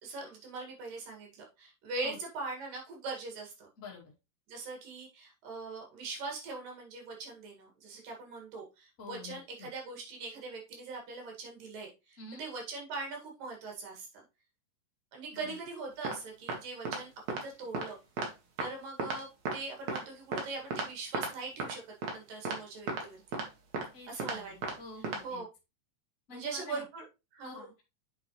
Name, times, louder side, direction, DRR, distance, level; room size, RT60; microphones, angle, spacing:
voice 1, 0.0-3.7 4.5-14.2 15.1-18.0 18.6-21.8 22.1-23.4 24.1-24.8 25.2-25.5 26.3-27.1 27.3-27.6, right 3 dB, 75° right, 1 dB, 3.6 m, -41 dB
voice 2, 3.8-4.1 9.0-9.7 12.2-12.4 15.3-15.5 23.9-25.4 26.3-26.8 27.4-27.8, left 3 dB, 30° left, -3 dB, 1.9 m, -47 dB
sound 1, 16.0-16.2 16.5-16.6 16.8-17.0 17.3-17.4 17.7-17.9 18.2-18.3 18.6-18.7 19.0-19.2 19.4-19.6 19.9-20.0 20.3-20.4 20.7-20.9 21.1-21.3 21.6-21.7 22.0-22.1 22.4-22.6 22.9-23.0 23.3-23.4 23.7-23.9 24.2-24.4 24.6-24.7 25.0-25.2, right 3 dB, 60° right, 2.3 m, -34 dB
8.0 x 4.7 x 3.0 m, 0.26 s
omnidirectional pair, 3.9 m